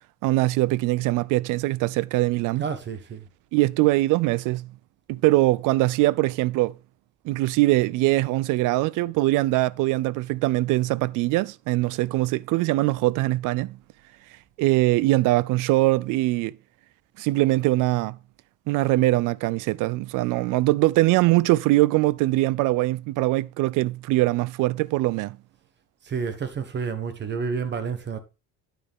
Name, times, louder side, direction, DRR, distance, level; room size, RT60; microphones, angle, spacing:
voice 1, 0.2-2.6 3.5-4.7 5.1-6.8 7.2-13.8 14.6-16.5 17.2-18.2 18.7-25.4, right 19 dB, 65° right, 0.5 m, -22 dB
voice 2, 2.6-3.3 26.0-28.2, right 5 dB, 35° right, 1.3 m, -30 dB
9.5 x 6.5 x 3.7 m
cardioid pair, 135°, 33 cm